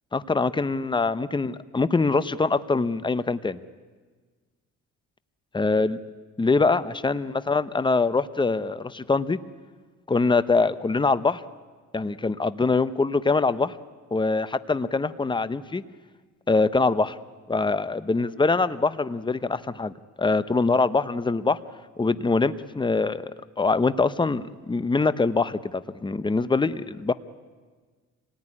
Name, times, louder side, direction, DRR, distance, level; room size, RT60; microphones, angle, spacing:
voice 1, 0.1-3.6 5.5-6.0 6.4-9.4 10.1-11.4 11.9-13.7 14.1-15.8 16.5-17.2 17.5-19.9 20.2-21.6 22.0-27.1, left 3 dB, 15° left, 14 dB, 0.9 m, -24 dB
26.5 x 18.0 x 10.0 m, 1.4 s
cardioid pair, 90°, 31 cm